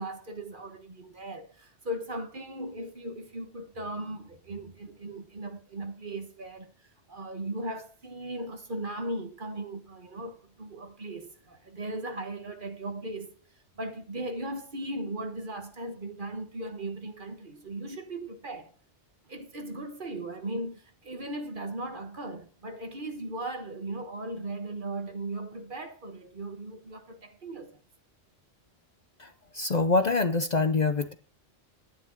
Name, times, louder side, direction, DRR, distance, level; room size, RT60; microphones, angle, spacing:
voice 1, 0.0-13.3 13.7-18.7 19.2-27.8, right 1 dB, 45° right, 1.6 m, -37 dB
voice 2, 29.2-31.1, left 3 dB, 45° left, 0.8 m, -25 dB
12.0 x 9.6 x 4.0 m
omnidirectional pair, 1.2 m